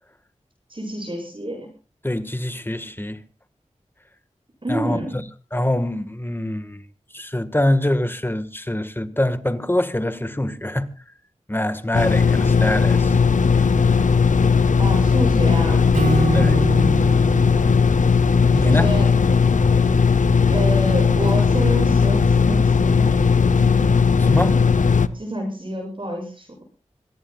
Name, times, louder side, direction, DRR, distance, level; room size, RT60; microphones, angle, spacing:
voice 1, 0.7-1.7 4.6-5.2 14.8-15.9 18.5-19.1 20.5-23.3 25.1-26.5, right 1 dB, 40° right, 7.9 m, -28 dB
voice 2, 2.0-3.2 4.7-5.0 5.5-6.8 7.1-10.9 11.5-13.2 16.3-16.6 18.5-18.9 24.2-24.6, left 1 dB, 15° left, 1.6 m, -24 dB
sound 1, 11.9-25.1, left 5 dB, 80° left, 0.8 m, -17 dB
Acoustic guitar / Strum, 15.9-19.3, right 3 dB, 90° right, 3.7 m, -26 dB
26.5 x 18.0 x 2.4 m
cardioid pair, 45°, 13 cm